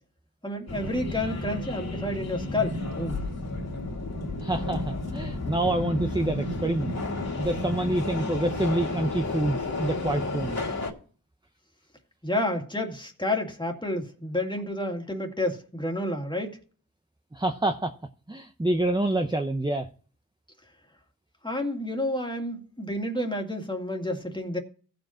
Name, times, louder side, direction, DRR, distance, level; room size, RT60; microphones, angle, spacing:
voice 1, 0.4-3.2 12.2-16.6 21.4-24.6, left 1 dB, 15° left, 2.2 m, -30 dB
Subway metro underground, 0.7-10.9, left 2 dB, 45° left, 2.6 m, -32 dB
voice 2, 4.4-7.0 7.4-10.6 17.3-17.9 18.3-19.9, right 1 dB, 10° right, 0.8 m, -27 dB
15.5 x 5.2 x 4.4 m
cardioid pair, 60°, 36 cm